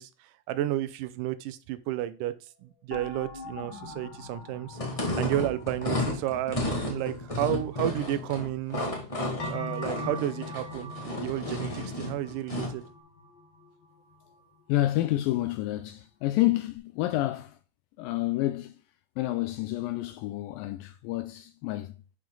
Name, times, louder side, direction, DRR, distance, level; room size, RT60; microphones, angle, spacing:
voice 1, 0.0-2.3 2.6-4.8 5.2-8.8 9.5-12.8, right 13 dB, 75° right, 2.1 m, -32 dB
sound 1, 2.9-7.4 9.4-14.8 15.2-15.3, left 1 dB, 60° left, 1.2 m, -43 dB
sound 2, 4.7-12.8, left 2 dB, 40° left, 0.4 m, -33 dB
voice 2, 14.7-17.6 18.0-18.8 19.2-22.0, left 16 dB, 80° left, 2.2 m, -29 dB
11.0 x 4.9 x 3.9 m
omnidirectional pair, 4.2 m